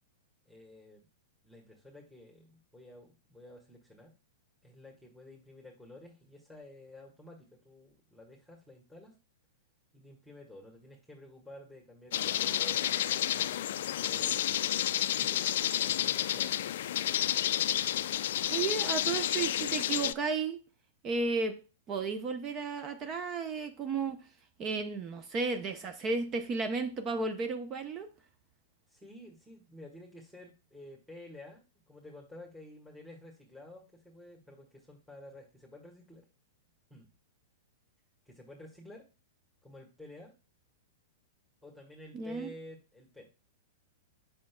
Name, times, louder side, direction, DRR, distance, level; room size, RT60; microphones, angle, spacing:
voice 1, 0.5-1.1 1.4-4.1 4.6-9.1 9.9-14.4 15.1-16.7 28.9-36.3 36.9-37.1 38.3-39.1 39.6-40.3 41.6-43.3, left 1 dB, ahead, 1.7 m, -51 dB
sound 1, 12.1-20.1, left 11 dB, 65° left, 0.3 m, -30 dB
voice 2, 18.5-20.6 21.0-21.6 21.9-24.2 24.6-28.1 42.1-42.5, right 4 dB, 30° right, 0.8 m, -33 dB
7.4 x 5.8 x 2.3 m
hypercardioid pair, 110°, 0 cm